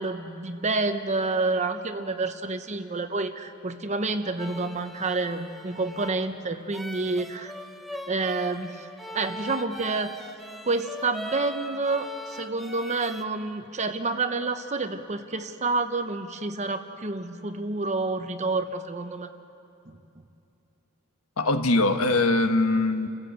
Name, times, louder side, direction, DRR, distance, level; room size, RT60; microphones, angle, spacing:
voice 1, 0.0-7.5 8.1-8.9 9.1-10.2 10.7-19.3 19.9-20.0, right 3 dB, 35° right, 8 dB, 0.9 m, -29 dB
sound 1, 4.4-13.2, equal, ahead, 0.8 m, -41 dB
voice 2, 21.4-23.1, left 2 dB, 90° left, 7 dB, 1.3 m, -22 dB
30.0 x 15.5 x 8.1 m, 2.7 s
head